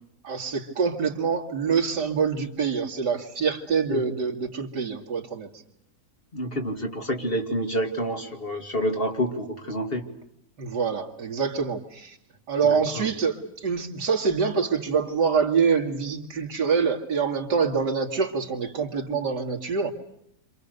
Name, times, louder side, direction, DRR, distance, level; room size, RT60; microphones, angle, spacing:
voice 1, 0.2-5.5 10.6-12.2 12.5-19.9, right 5 dB, 85° right, 3 dB, 2.8 m, -25 dB
voice 2, 6.3-10.0 12.6-13.1, equal, 35° left, 3 dB, 2.8 m, -28 dB
29.0 x 26.5 x 6.7 m, 0.77 s
omnidirectional pair, 1.8 m